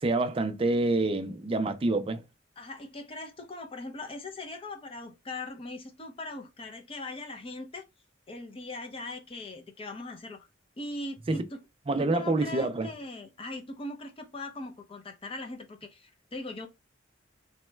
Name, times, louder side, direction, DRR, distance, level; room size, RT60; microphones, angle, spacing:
voice 1, 0.0-2.2 11.3-11.4 11.9-12.9, right 2 dB, 30° right, 0.4 m, -27 dB
voice 2, 2.6-7.9 8.3-10.5 10.8-11.6 12.0-16.7, left 2 dB, 30° left, 0.6 m, -40 dB
3.0 x 2.2 x 3.1 m
head